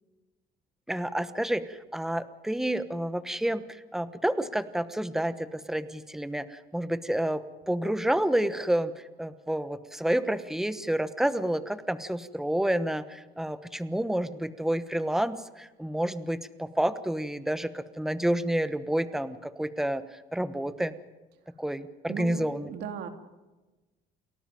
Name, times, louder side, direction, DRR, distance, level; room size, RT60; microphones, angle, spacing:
voice 1, 0.9-3.6 3.9-20.0 20.3-20.9 21.6-22.7, right 1 dB, ahead, 12 dB, 1.2 m, -29 dB
voice 2, 22.1-23.1, right 6 dB, 75° right, 6 dB, 2.9 m, -37 dB
29.0 x 13.0 x 9.2 m, 1.1 s
cardioid pair, 110°, 17 cm